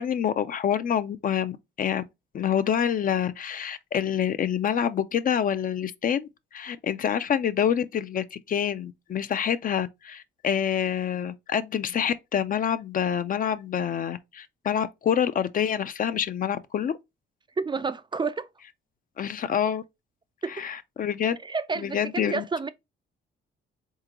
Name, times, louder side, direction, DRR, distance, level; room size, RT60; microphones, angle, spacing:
voice 1, 0.0-2.0 2.3-16.9 19.2-19.8 20.6-21.4 21.8-22.4, left 8 dB, 45° left, 0.4 m, -27 dB
voice 2, 17.6-18.5 20.4-20.6 21.4-22.7, right 4 dB, 25° right, 0.3 m, -30 dB
3.7 x 3.6 x 2.9 m
cardioid pair, 90°, 20 cm